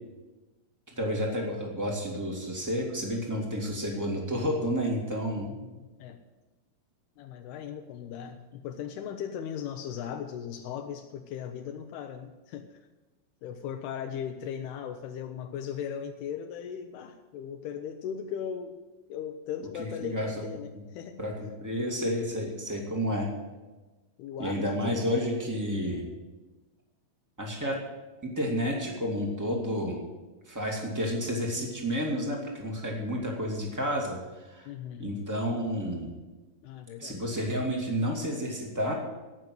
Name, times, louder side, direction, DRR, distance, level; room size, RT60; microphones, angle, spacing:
voice 1, 0.9-5.5 19.8-20.3 21.2-21.3 21.6-23.3 24.4-26.0 27.4-27.8 28.2-30.0 30.5-34.2 34.4-34.7 35.0-36.1 37.0-38.9, equal, 10° right, -1 dB, 1.0 m, -30 dB
voice 2, 5.5-6.2 7.2-12.7 13.4-18.8 19.1-21.5 24.2-25.3 34.7-35.2 36.6-37.2, left 8 dB, 85° left, 5 dB, 2.7 m, -38 dB
16.5 x 6.2 x 7.7 m, 1.2 s
omnidirectional pair, 4.7 m